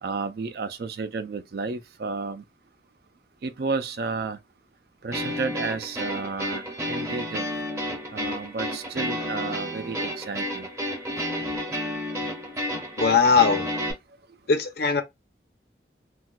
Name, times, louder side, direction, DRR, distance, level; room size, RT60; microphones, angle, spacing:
voice 1, 0.0-2.4 3.4-4.4 5.0-7.5 8.1-10.7, right 4 dB, 60° right, 0.4 m, -32 dB
sound 1, 5.1-13.9, equal, 15° right, 0.6 m, -31 dB
voice 2, 13.0-13.7 14.5-15.0, left 5 dB, 65° left, 0.6 m, -20 dB
4.1 x 2.2 x 2.3 m
head